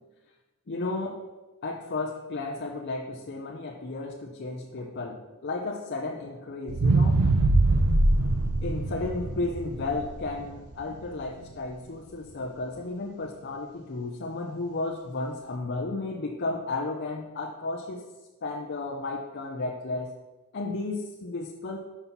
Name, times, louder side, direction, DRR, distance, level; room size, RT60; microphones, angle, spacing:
voice 1, 0.7-1.2 1.6-7.3 8.6-18.0 18.4-20.1 20.5-21.8, left 3 dB, 50° left, 0 dB, 0.6 m, -33 dB
sound 1, 6.7-10.9 11.4-11.5, right 2 dB, 85° right, 0.6 m, -23 dB
5.6 x 5.6 x 5.8 m, 1.2 s
head